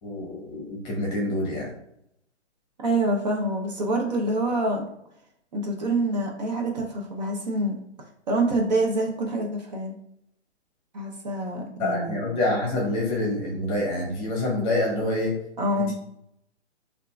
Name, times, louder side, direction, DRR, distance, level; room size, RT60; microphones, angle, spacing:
voice 1, 0.0-1.7 11.8-15.3 15.8-15.9, left 1 dB, 15° left, -3 dB, 0.9 m, -27 dB
voice 2, 2.8-4.9 5.5-7.8 8.3-9.9 10.9-12.2 15.6-15.9, right 1 dB, 40° right, 0 dB, 0.7 m, -26 dB
6.4 x 2.6 x 2.3 m, 0.77 s
hypercardioid pair, 150°, 35 cm